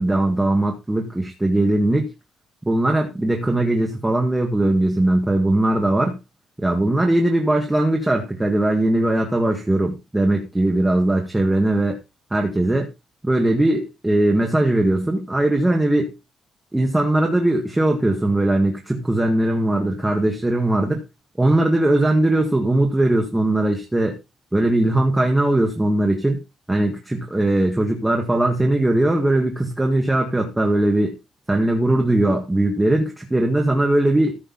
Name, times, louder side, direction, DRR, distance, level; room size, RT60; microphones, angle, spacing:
voice 1, 0.0-2.1 2.6-6.2 6.6-12.0 12.3-12.9 13.2-16.1 16.7-21.0 21.4-24.2 24.5-26.4 26.7-31.2 31.5-34.4, right 1 dB, 10° right, 1 dB, 1.8 m, -20 dB
14.0 x 6.5 x 4.1 m, 0.26 s
cardioid pair, 170°, 0 cm